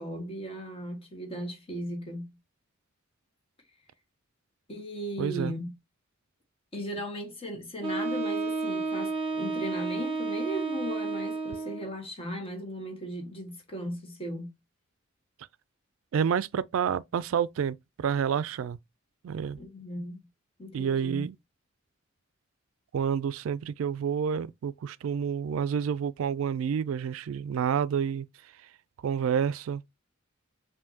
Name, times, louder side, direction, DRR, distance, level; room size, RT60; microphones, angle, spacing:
voice 1, 0.0-2.3 4.7-5.7 6.7-14.5 19.6-20.2 20.6-21.2, equal, 30° left, 1.4 m, -37 dB
voice 2, 5.2-5.5 16.1-18.8 19.2-19.6 20.7-21.4 22.9-28.3 29.0-29.8, right 7 dB, 75° right, 0.3 m, -29 dB
Wind instrument woodwind instrument, 7.8-11.9, right 3 dB, 25° right, 0.9 m, -31 dB
5.6 x 2.7 x 2.7 m
head